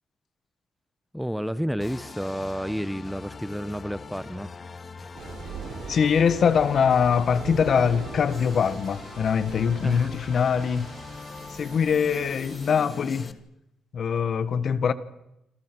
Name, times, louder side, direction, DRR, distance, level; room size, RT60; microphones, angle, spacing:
voice 1, 1.1-4.5 9.8-10.1, equal, ahead, 1.0 m, -30 dB
sound 1, 1.8-13.3, left 4 dB, 35° left, 2.1 m, -42 dB
sound 2, 5.1-12.8, right 5 dB, 75° right, 6.6 m, -41 dB
voice 2, 5.9-10.9 11.5-13.4 13.9-14.9, left 7 dB, 55° left, 1.7 m, -23 dB
27.5 x 26.5 x 6.3 m
cardioid pair, 90°, 0 cm